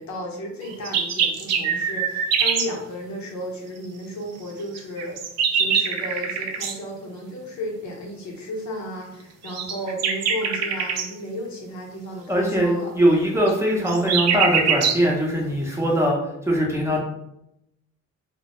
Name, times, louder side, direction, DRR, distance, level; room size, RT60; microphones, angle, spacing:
voice 1, 0.0-12.9, equal, 70° left, 0 dB, 0.7 m, -34 dB
sound 1, 0.6-2.7 4.7-6.8 9.4-11.1 13.5-15.0, right 6 dB, 60° right, 0.4 m, -23 dB
voice 2, 12.3-16.2 16.5-17.0, equal, 10° right, -3 dB, 0.6 m, -21 dB
2.1 x 2.0 x 2.9 m, 0.82 s
cardioid pair, 90°, 30 cm